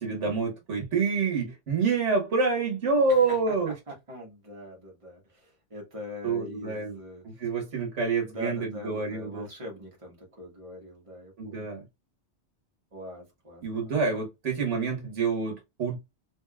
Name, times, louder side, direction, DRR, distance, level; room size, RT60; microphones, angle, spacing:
voice 1, 0.0-3.7 6.2-7.0 7.2-9.5 11.4-11.8 13.6-16.0, right 4 dB, 85° right, 1.6 m, -27 dB
voice 2, 3.1-7.5 8.2-11.7 12.9-14.0, left 1 dB, 30° right, 1.6 m, -43 dB
3.8 x 3.5 x 2.3 m
omnidirectional pair, 1.2 m